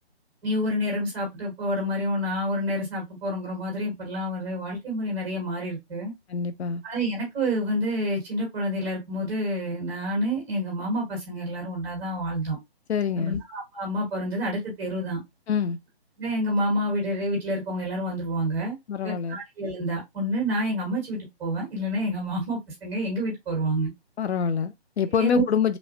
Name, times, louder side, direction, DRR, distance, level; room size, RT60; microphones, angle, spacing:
voice 1, 0.4-6.1 6.8-12.6 13.2-15.2 16.2-18.7 19.0-23.9 25.1-25.4, equal, 5° right, 0.8 m, -28 dB
voice 2, 6.3-6.8 12.9-13.4 15.5-15.8 18.9-19.4 24.2-25.8, left 7 dB, 80° left, 0.5 m, -25 dB
3.0 x 2.0 x 2.6 m
hypercardioid pair, 155°, 32 cm